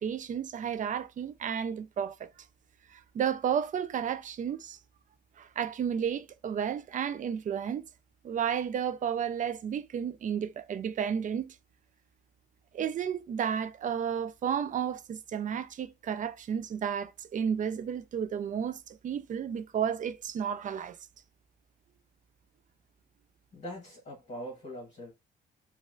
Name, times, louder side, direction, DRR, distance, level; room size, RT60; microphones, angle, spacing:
voice 1, 0.0-2.3 2.9-4.8 5.4-7.9 8.2-11.6 12.7-21.0, right 8 dB, 40° right, 0.4 m, -32 dB
voice 2, 23.5-25.1, equal, 35° left, 1.3 m, -42 dB
2.9 x 2.5 x 2.4 m
cardioid pair, 90°, 20 cm